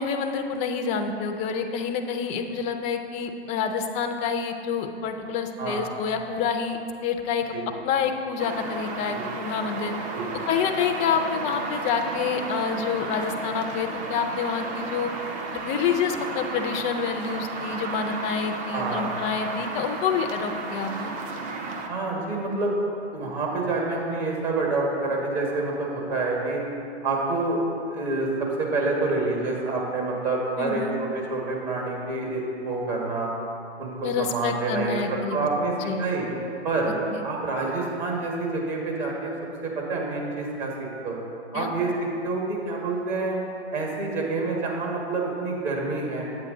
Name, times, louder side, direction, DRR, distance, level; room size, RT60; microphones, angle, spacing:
voice 1, 0.0-6.8 7.0-7.5 7.8-9.9 10.5-15.1 15.5-21.1 30.6-30.9 34.0-35.4 35.8-36.0 37.1-37.2 41.5-41.7, left 6 dB, 20° left, 5 dB, 0.5 m, -27 dB
motorway ambient background, 8.4-21.9, right 3 dB, 25° right, 0.7 m, -33 dB
voice 2, 18.7-19.1 21.9-22.7 23.1-26.6 27.0-27.6 27.9-33.3 33.8-35.7 36.0-36.3 36.6-36.9 37.2-39.3 39.6-41.2 41.5-43.4 43.7-46.3, right 3 dB, 40° right, -2 dB, 1.8 m, -27 dB
8.7 x 8.3 x 3.9 m, 2.7 s
hypercardioid pair, 125°, 33 cm